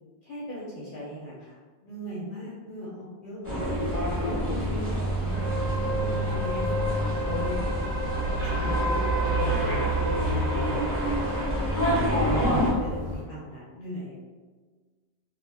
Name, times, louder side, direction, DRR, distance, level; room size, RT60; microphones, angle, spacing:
voice 1, 0.2-3.8 4.2-5.1 5.9-7.0 7.2-8.0 8.6-11.3 11.8-14.3, equal, 60° left, -6 dB, 0.7 m, -38 dB
sound 1, 3.4-12.7, equal, 15° right, 0.8 m, -29 dB
sound 2, 3.6-13.2, right 1 dB, 75° right, 0.8 m, -29 dB
2.2 x 2.1 x 3.2 m, 1.4 s
omnidirectional pair, 1.1 m